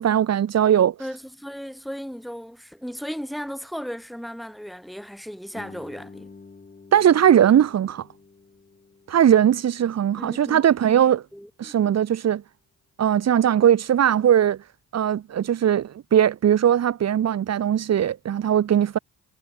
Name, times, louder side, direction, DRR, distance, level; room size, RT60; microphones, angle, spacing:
voice 1, 0.0-0.9 6.9-8.0 9.1-11.2 11.6-12.4 13.0-14.6 14.9-19.0, right 10 dB, 60° right, 2.1 m, -19 dB
voice 2, 1.0-6.3 10.2-11.0 11.3-11.8, equal, ahead, 4.3 m, -36 dB
Guitar, 5.5-10.9, left 4 dB, 30° left, 6.4 m, -48 dB
cardioid pair, 90°, 30 cm